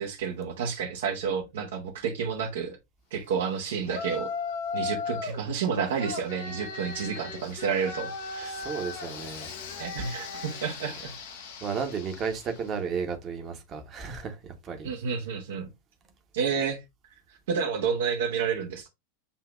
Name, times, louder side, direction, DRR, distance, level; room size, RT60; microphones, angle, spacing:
voice 1, 0.0-2.8 3.1-4.3 4.7-8.5 9.8-11.1 14.8-15.7 16.3-16.8 17.5-18.9, right 6 dB, 60° right, 0.8 m, -30 dB
Yell, 3.9-5.4 6.0-12.7, left 4 dB, 55° left, 0.9 m, -37 dB
voice 2, 8.5-9.5 11.6-14.4 14.6-14.9, right 6 dB, 30° right, 1.0 m, -33 dB
6.9 x 2.8 x 2.3 m
figure-of-eight pair, 90°, 0 cm